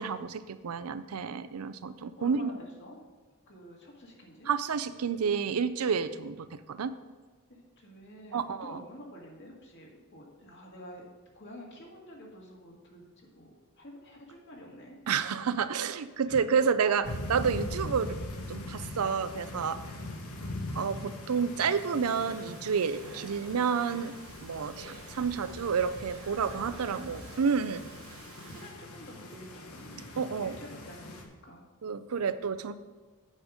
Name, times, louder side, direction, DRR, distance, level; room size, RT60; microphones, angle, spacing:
voice 1, 0.0-2.5 4.5-6.9 8.3-8.8 15.1-18.2 18.5-19.8 20.7-24.1 24.4-27.8 30.2-30.6 31.8-32.7, right 6 dB, 90° right, 12 dB, 0.5 m, -30 dB
voice 2, 2.1-3.0 3.5-4.5 7.5-11.0 11.4-15.0 16.3-16.5 20.1-20.2 26.6-27.4 28.1-31.7, equal, 55° left, -1 dB, 1.9 m, -49 dB
sound 1, 17.0-31.2, left 1 dB, 85° left, 1.3 m, -42 dB
Domestic sounds home sounds, 21.7-28.7, right 4 dB, 65° right, 1.3 m, -51 dB
8.5 x 5.2 x 6.4 m, 1.4 s
head